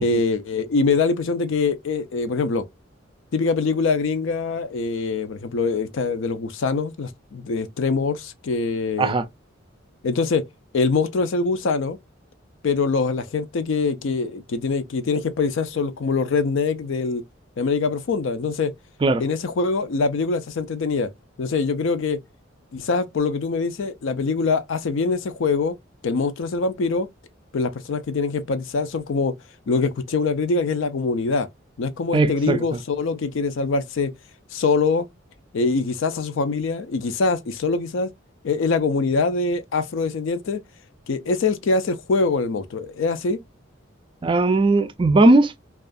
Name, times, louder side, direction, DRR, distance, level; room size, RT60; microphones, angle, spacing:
voice 1, 0.0-2.6 3.3-9.2 10.0-10.4 10.7-12.0 12.6-17.2 17.6-18.7 19.2-21.1 21.4-22.2 22.7-25.8 26.0-27.1 27.5-29.3 29.7-31.5 31.8-34.1 34.5-35.1 35.5-38.1 38.4-40.6 41.1-43.4, left 4 dB, 70° left, 0.4 m, -23 dB
voice 2, 32.1-32.8 44.2-45.6, right 2 dB, 25° right, 0.3 m, -18 dB
2.3 x 2.3 x 2.5 m
head